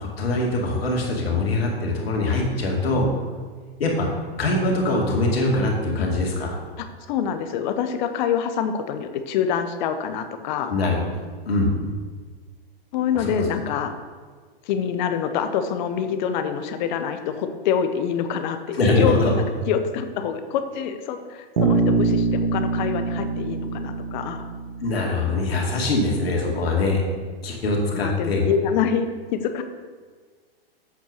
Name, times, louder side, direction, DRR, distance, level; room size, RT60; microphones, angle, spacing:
voice 1, 0.0-3.1 3.8-4.1 4.4-6.6 10.7-11.0 11.5-11.7 13.1-13.5 18.7-19.3 24.8-27.0 27.4-28.4, left 2 dB, 75° left, -1 dB, 2.5 m, -22 dB
voice 2, 6.8-10.7 12.9-13.9 14.6-24.4 27.9-29.6, left 7 dB, 50° left, 8 dB, 0.9 m, -26 dB
Bass guitar, 21.6-25.4, right 4 dB, 85° right, 1.4 m, -24 dB
8.3 x 4.6 x 6.5 m, 1.5 s
hypercardioid pair, 120°, 30 cm